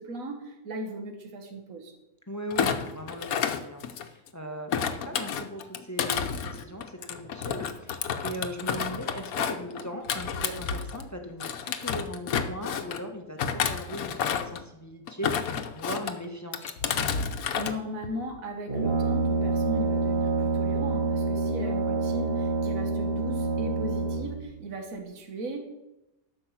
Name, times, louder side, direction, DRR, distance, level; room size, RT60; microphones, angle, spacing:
voice 1, 0.0-1.9 17.6-25.7, right 1 dB, 70° right, 4 dB, 1.8 m, -37 dB
voice 2, 2.3-16.8 21.8-21.9, equal, 15° left, 4 dB, 1.1 m, -39 dB
Thump thud, 2.5-4.3 4.7-11.1 11.4-13.0 13.4-14.6 15.1-16.1 16.5-17.7 18.0-18.4, left 7 dB, 80° left, 1.3 m, -30 dB
Brass instrument, 18.7-24.4, right 3 dB, 40° right, 1.9 m, -27 dB
12.0 x 5.6 x 7.3 m, 0.93 s
omnidirectional pair, 1.5 m